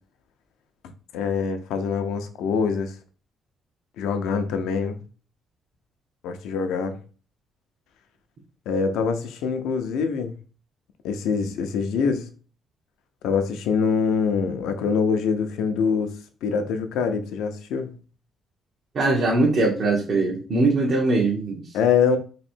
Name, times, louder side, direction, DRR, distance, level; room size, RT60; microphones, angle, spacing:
voice 1, 1.1-3.0 4.0-5.0 6.2-7.0 8.7-10.3 11.0-12.3 13.2-17.9 21.7-22.2, left 6 dB, 90° left, 0.5 m, -24 dB
voice 2, 18.9-21.7, right 2 dB, 55° right, 1.0 m, -21 dB
3.1 x 2.7 x 4.3 m
cardioid pair, 90°, 0 cm